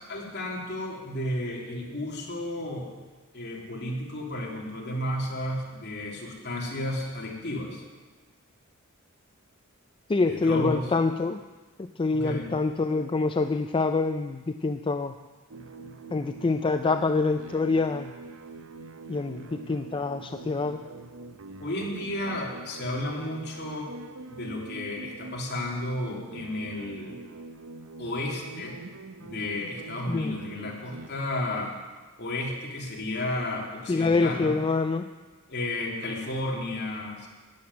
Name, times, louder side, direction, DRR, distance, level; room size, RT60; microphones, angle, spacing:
voice 1, 0.0-2.9 3.3-7.8 10.2-10.9 12.1-12.5 21.6-23.9 24.3-27.2 28.0-28.8 29.2-31.7 32.2-34.6 35.5-37.3, left 1 dB, 50° left, -2 dB, 3.1 m, -32 dB
voice 2, 10.1-11.4 11.8-15.1 16.1-18.1 19.1-20.8 30.1-30.3 33.9-35.1, left 3 dB, 25° left, 7 dB, 0.4 m, -26 dB
sound 1, 15.5-31.1, right 3 dB, 65° right, 0.8 m, -44 dB
12.5 x 7.9 x 9.6 m, 1.3 s
head